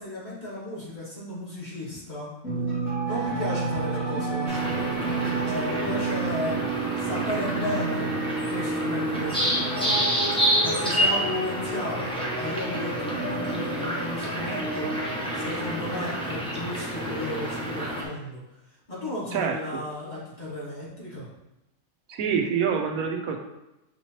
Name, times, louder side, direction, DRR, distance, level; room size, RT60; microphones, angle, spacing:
voice 1, 0.0-2.3 3.0-8.1 8.5-10.2 10.6-18.4 18.9-21.3, left 1 dB, 35° left, -8 dB, 1.6 m, -35 dB
sound 1, 2.4-16.2, right 3 dB, 80° left, 1.8 m, -31 dB
sound 2, 3.1-11.1, right 1 dB, 55° left, 0.4 m, -40 dB
sound 3, 4.5-18.0, equal, 5° left, 0.7 m, -29 dB
voice 2, 19.3-19.8 22.1-23.4, right 7 dB, 85° right, 4 dB, 1.0 m, -26 dB
6.2 x 3.0 x 2.8 m, 0.94 s
omnidirectional pair, 1.4 m